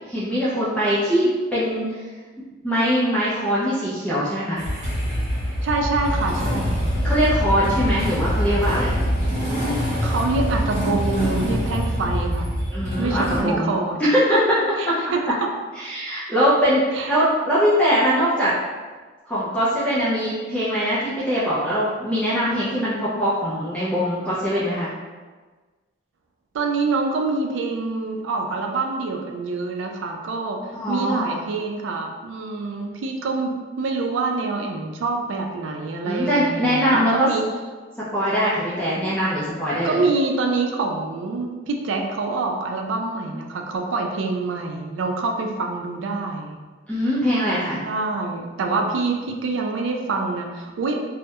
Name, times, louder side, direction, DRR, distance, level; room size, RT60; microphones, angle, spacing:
voice 1, 0.1-1.9 2.6-4.6 7.0-9.0 12.7-13.7 14.0-15.0 15.8-18.5 19.3-24.9 30.7-31.4 36.0-37.3 38.0-40.0 46.9-47.8, equal, 5° left, -10 dB, 0.4 m, -22 dB
Motorcycle / Engine starting, 4.6-13.4, equal, 40° right, 1.0 m, -24 dB
voice 2, 5.6-6.9 10.0-12.5 13.0-14.0 14.8-15.5 16.9-17.1 26.5-30.6 30.9-37.4 39.8-46.6 47.9-51.0, right 3 dB, 80° right, 2 dB, 0.3 m, -26 dB
2.2 x 2.0 x 2.8 m, 1.4 s
head